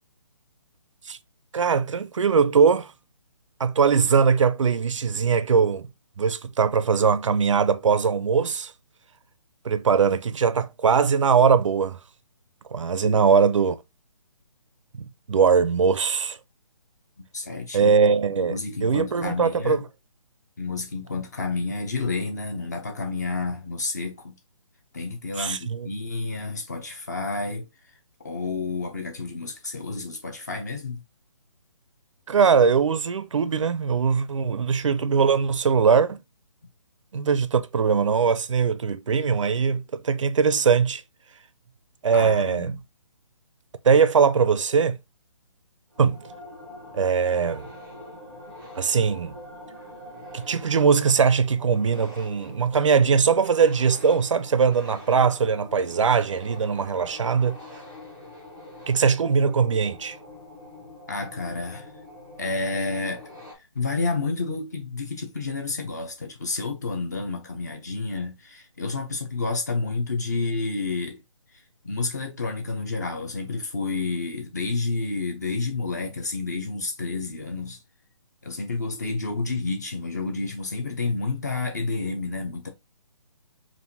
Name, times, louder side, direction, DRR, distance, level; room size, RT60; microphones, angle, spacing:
voice 1, 1.5-2.9 3.6-5.9 6.2-8.7 9.6-12.0 12.7-13.8 15.0-16.4 17.7-18.5 18.8-19.8 25.4-25.9 32.3-36.2 37.1-41.0 42.0-42.8 43.8-45.0 46.0-46.2 46.9-47.7 48.7-49.4 50.3-57.6 58.9-60.2, right 6 dB, 65° right, 0.5 m, -21 dB
voice 2, 17.3-17.9 18.4-19.8 20.6-24.3 24.9-27.7 28.2-31.0 42.1-42.8 61.1-61.9 62.4-71.2 71.5-77.8 78.4-82.7, left 3 dB, 30° left, 0.7 m, -30 dB
sound 1, 45.9-63.5, left 1 dB, ahead, 0.4 m, -44 dB
5.5 x 2.6 x 2.7 m
hypercardioid pair, 180°, 17 cm